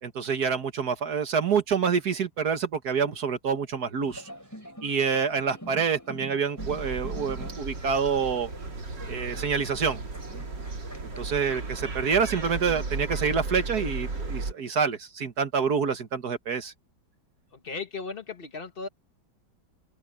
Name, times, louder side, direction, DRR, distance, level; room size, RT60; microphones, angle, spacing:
voice 1, 0.0-4.3 4.8-8.5 9.1-10.0 11.0-16.7, right 6 dB, 65° right, 1.9 m, -27 dB
sound 1, 4.0-11.8, equal, 10° left, 7.8 m, -46 dB
sound 2, 6.6-14.5, right 3 dB, 85° right, 3.7 m, -35 dB
voice 2, 17.6-18.9, left 4 dB, 35° left, 1.4 m, -36 dB
open air
omnidirectional pair, 1.8 m